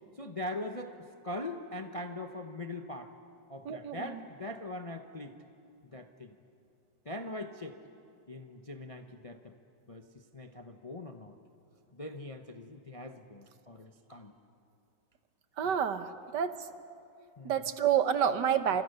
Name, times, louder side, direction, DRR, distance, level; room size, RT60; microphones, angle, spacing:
voice 1, 0.2-3.1 3.5-5.3 5.9-6.3 7.1-7.8 8.3-9.5 9.9-10.0 10.3-11.3 11.9-14.3 17.4-17.5, left 1 dB, 30° left, 6 dB, 0.7 m, -41 dB
voice 2, 3.6-4.2 15.6-16.5 17.4-18.8, right 8 dB, 65° right, 11 dB, 1.5 m, -29 dB
30.0 x 26.5 x 6.8 m, 2.6 s
omnidirectional pair, 2.1 m